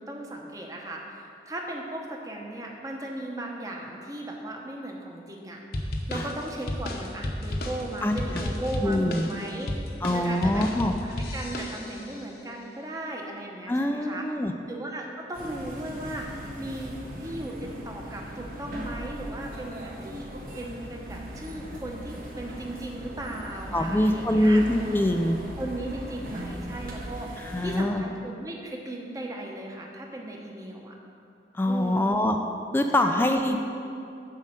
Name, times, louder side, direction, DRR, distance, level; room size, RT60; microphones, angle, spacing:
voice 1, 0.0-5.6 6.1-9.7 10.1-14.3 14.7-16.3 16.6-20.3 20.5-24.6 25.5-31.0 31.6-32.2 33.0-33.5, right 1 dB, 20° right, 0 dB, 0.9 m, -37 dB
sound 1, 5.7-12.2, left 1 dB, 60° left, 0.8 m, -33 dB
voice 2, 8.8-9.3 10.0-10.9 13.7-14.5 23.7-25.4 27.4-28.0 31.5-32.4 32.7-33.6, left 1 dB, 10° left, 5 dB, 0.3 m, -24 dB
sound 2, 15.3-27.8, equal, 50° right, 1.2 m, -39 dB
7.3 x 5.5 x 7.5 m, 2.6 s
head